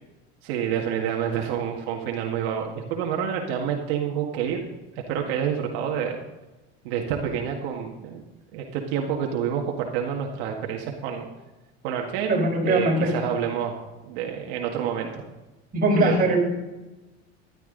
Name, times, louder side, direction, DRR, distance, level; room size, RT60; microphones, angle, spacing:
voice 1, 0.4-4.7 5.0-6.2 6.8-8.2 8.5-11.3 11.8-13.7 14.1-15.2 16.0-16.1, right 8 dB, 80° right, 1 dB, 1.9 m, -28 dB
voice 2, 12.2-13.1 15.7-16.4, right 1 dB, 30° right, -1 dB, 5.2 m, -21 dB
13.5 x 11.5 x 3.9 m, 1.1 s
supercardioid pair, 125°, 31 cm